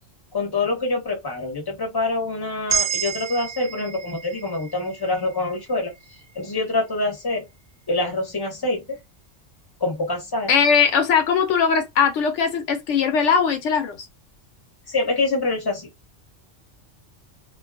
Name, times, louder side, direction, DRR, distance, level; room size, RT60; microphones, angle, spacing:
voice 1, 0.3-5.9 6.3-7.4 7.9-9.0 9.8-10.5 14.9-15.9, left 2 dB, 20° left, 1.0 m, -25 dB
sound 1, 2.7-7.0, right 7 dB, 70° right, 0.9 m, -31 dB
voice 2, 10.5-14.0, left 6 dB, 85° left, 0.9 m, -20 dB
2.6 x 2.3 x 2.3 m
omnidirectional pair, 1.2 m